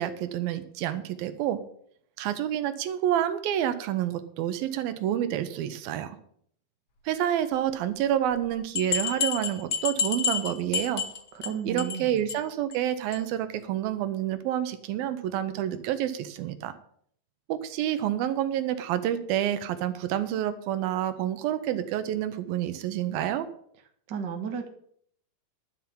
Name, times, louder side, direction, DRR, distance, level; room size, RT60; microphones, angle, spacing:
voice 1, 0.0-1.6 2.2-6.2 7.1-11.0 11.7-16.7 17.5-23.5, right 11 dB, 85° right, 11 dB, 2.7 m, -28 dB
sound 1, 8.3-8.4 8.8-11.5 11.8-12.0 12.3-12.4 12.7-12.8 13.1-13.2, left 6 dB, 50° left, 1.5 m, -29 dB
voice 2, 11.4-12.2 24.1-24.7, right 7 dB, 45° right, 4 dB, 1.5 m, -33 dB
11.5 x 5.9 x 8.6 m, 0.64 s
omnidirectional pair, 4.2 m